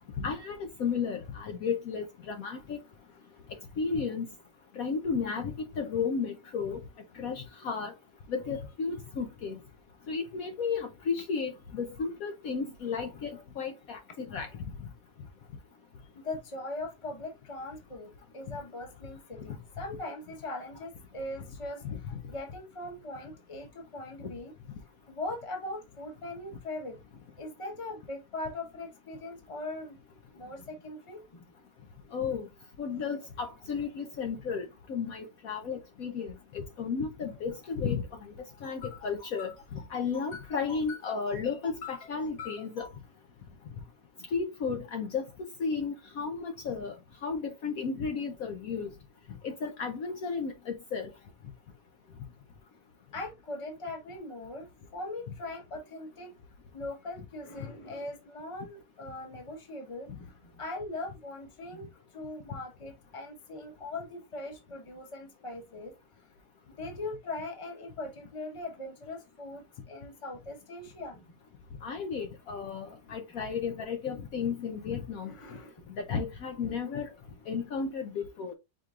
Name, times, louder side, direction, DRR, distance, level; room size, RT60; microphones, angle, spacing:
voice 1, 0.2-2.8 3.8-4.3 4.8-6.8 7.1-7.9 8.3-9.6 10.1-14.5 19.5-19.6 21.8-22.2 32.1-32.5 32.8-38.3 38.6-39.6 39.9-42.9 44.3-45.2 45.6-46.9 47.2-48.9 49.4-51.1 71.8-75.3 76.1-77.1 77.5-78.5, left 5 dB, 65° left, 1.0 m, -33 dB
voice 2, 16.1-21.8 22.3-24.5 25.1-27.0 27.4-30.0 30.3-31.4 53.1-54.7 54.9-56.3 56.7-65.9 66.8-71.3 75.2-75.9, left 2 dB, 20° left, 1.0 m, -40 dB
5.0 x 4.5 x 2.4 m
omnidirectional pair, 1.8 m